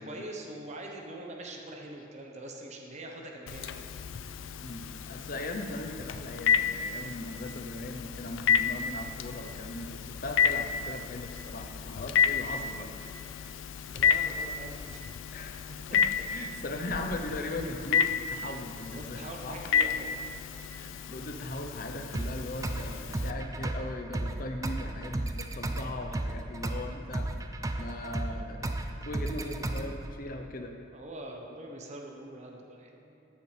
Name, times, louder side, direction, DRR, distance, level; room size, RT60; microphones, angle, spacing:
voice 1, 0.0-3.9 13.9-15.0 15.9-16.0 18.9-20.3 30.9-33.2, right 1 dB, 35° right, 1 dB, 0.9 m, -43 dB
Telephone, 3.5-23.3, left 7 dB, 80° left, 0.4 m, -31 dB
voice 2, 4.6-12.9 15.3-15.5 15.9-16.0 16.3-19.6 20.7-27.3 27.8-28.7 29.0-30.7, left 1 dB, 45° left, 4 dB, 0.7 m, -39 dB
sound 1, 22.1-30.1, right 1 dB, 15° right, 0.3 m, -34 dB
14.0 x 6.8 x 3.3 m, 2.9 s
head